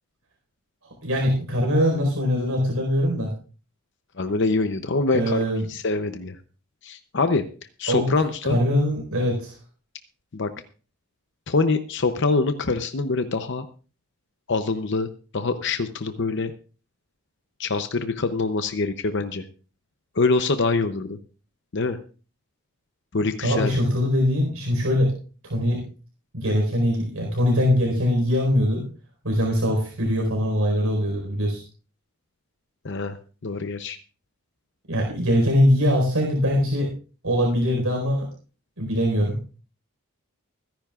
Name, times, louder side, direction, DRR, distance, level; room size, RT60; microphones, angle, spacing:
voice 1, 1.0-3.3 5.1-5.7 7.9-8.1 8.4-9.6 23.4-25.1 25.4-25.8 26.3-28.8 29.2-31.6 34.9-36.9 37.2-38.3 38.8-39.3, equal, 85° right, 0 dB, 4.6 m, -22 dB
voice 2, 4.2-6.4 6.8-7.4 7.8-8.6 10.3-10.5 11.5-13.6 14.5-15.1 15.3-16.5 17.6-19.4 20.2-21.2 21.7-22.0 23.1-23.7 32.8-33.2 33.4-34.0, left 3 dB, 55° left, 9 dB, 0.7 m, -24 dB
24.0 x 10.5 x 2.4 m, 0.36 s
head